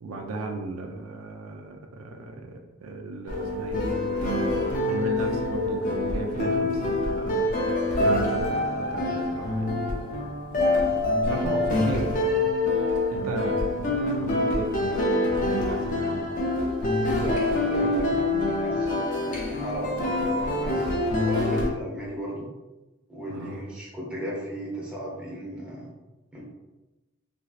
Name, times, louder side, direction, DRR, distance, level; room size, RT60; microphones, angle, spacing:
voice 1, 0.0-10.3 11.1-12.3 13.1-16.3 21.4-21.7 23.3-23.6, right 2 dB, 75° right, 2 dB, 0.4 m, -35 dB
sound 1, 3.3-21.7, left 2 dB, 35° left, 0.5 m, -26 dB
voice 2, 17.0-20.9 21.2-22.5 23.1-25.9 26.3-26.4, equal, 5° right, -6 dB, 0.8 m, -35 dB
3.0 x 2.6 x 2.4 m, 1.1 s
head